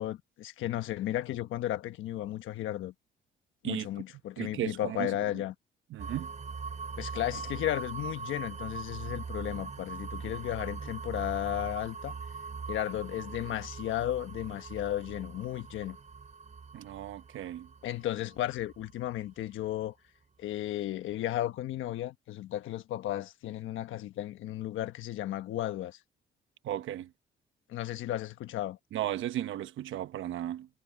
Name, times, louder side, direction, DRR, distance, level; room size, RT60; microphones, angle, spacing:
voice 1, 0.0-2.9 3.6-5.5 7.0-12.1 12.7-16.0 17.8-19.9 20.4-26.0 27.7-28.8, left 13 dB, 80° left, 1.2 m, -34 dB
voice 2, 4.4-5.1 5.9-6.3 16.7-17.7 26.6-27.1 28.9-30.7, right 12 dB, 80° right, 1.0 m, -35 dB
sound 1, 6.0-19.8, right 5 dB, 35° right, 5.1 m, -41 dB
cardioid pair, 90°, 20 cm